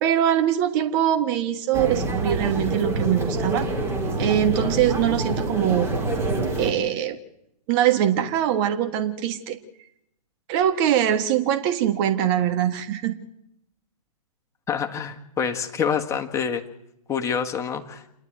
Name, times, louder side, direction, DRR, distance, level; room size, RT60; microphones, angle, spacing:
voice 1, 0.0-3.7 4.2-5.9 6.6-7.2 7.7-9.6 10.5-13.2, right 10 dB, 35° right, 8 dB, 1.5 m, -22 dB
sound 1, 1.7-6.7, right 2 dB, 15° right, 3.1 m, -26 dB
voice 2, 14.7-16.6 17.1-18.0, left 7 dB, 15° left, 5 dB, 1.7 m, -26 dB
27.5 x 11.5 x 9.1 m, 0.80 s
hypercardioid pair, 130°, 20 cm